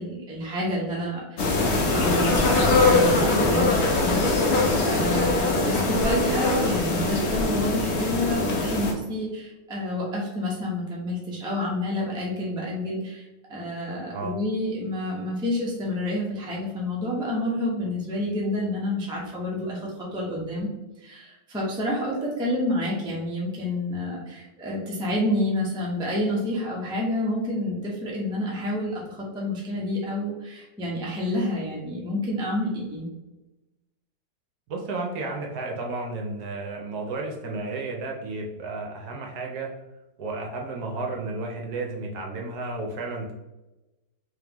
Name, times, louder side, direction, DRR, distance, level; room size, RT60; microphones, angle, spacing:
voice 1, 0.0-4.5 4.8-20.7 21.0-33.1, left 1 dB, 5° right, -4 dB, 0.4 m, -29 dB
sound 1, 1.4-8.9, left 2 dB, 60° left, 0.7 m, -22 dB
voice 2, 34.7-39.7 40.2-43.3, right 3 dB, 70° right, 0 dB, 1.1 m, -32 dB
3.7 x 3.3 x 2.9 m, 1.0 s
omnidirectional pair, 1.9 m